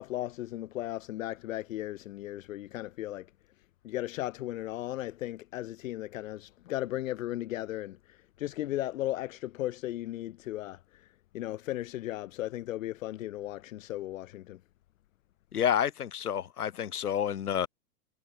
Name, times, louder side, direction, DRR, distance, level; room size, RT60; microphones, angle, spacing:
voice 1, 0.0-3.3 3.8-8.0 8.4-10.8 11.3-14.6, left 14 dB, 60° left, 4.0 m, -36 dB
voice 2, 15.5-17.7, left 9 dB, 80° left, 5.0 m, -29 dB
hypercardioid pair, 135°, 44 cm